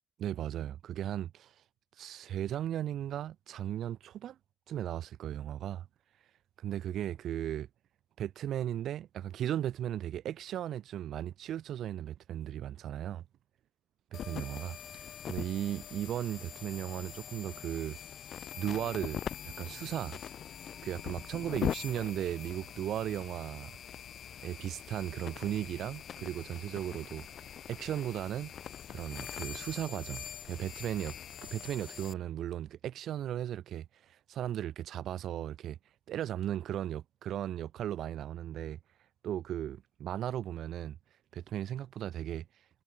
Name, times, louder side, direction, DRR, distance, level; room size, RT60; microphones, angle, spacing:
voice 1, 0.2-1.6 2.0-4.4 4.7-5.9 6.6-7.7 8.2-13.2 14.3-18.0 18.6-19.2 19.6-20.2 20.8-23.7 24.4-28.5 28.9-31.1 31.4-35.8 36.1-38.8 39.2-41.0 41.3-42.5, right 11 dB, 70° right, 0.6 m, -36 dB
sound 1, 14.1-32.1, left 9 dB, 60° left, 0.4 m, -42 dB
cardioid pair, 90°, 0 cm